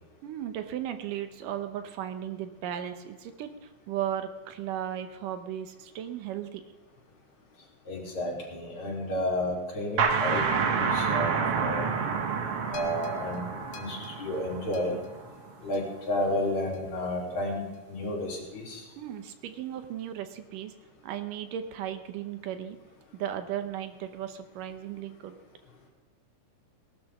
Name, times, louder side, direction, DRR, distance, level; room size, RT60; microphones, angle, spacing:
voice 1, 0.2-6.6 19.0-20.7 21.0-22.8 23.1-25.4, right 10 dB, 80° right, 9 dB, 2.6 m, -36 dB
voice 2, 7.9-11.8 12.7-13.5 13.8-15.0 15.6-18.8, left 1 dB, 60° left, -3 dB, 4.3 m, -32 dB
sound 1, 10.0-15.4, right 6 dB, 60° right, 1.7 m, -29 dB
sound 2, 12.7-17.1 17.7-17.8, left 5 dB, 75° left, 2.6 m, -46 dB
19.0 x 12.5 x 3.6 m, 1.2 s
omnidirectional pair, 3.7 m